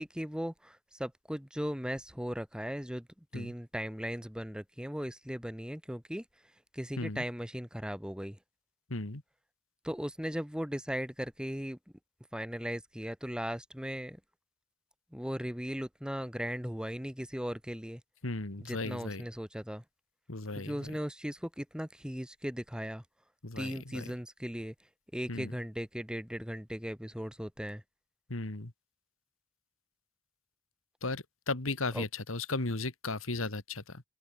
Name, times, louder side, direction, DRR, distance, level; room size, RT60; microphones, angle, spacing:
voice 1, 0.0-3.1 3.3-6.2 6.7-8.4 9.8-11.8 12.3-14.2 15.1-18.0 18.6-19.8 20.5-23.0 23.6-24.7 25.1-27.8 31.9-32.0, equal, 5° right, 4.0 m, -37 dB
voice 2, 8.9-9.2 18.2-19.2 20.3-20.9 23.4-24.1 25.3-25.5 28.3-28.7 31.0-34.0, left 2 dB, 85° left, 2.2 m, -36 dB
head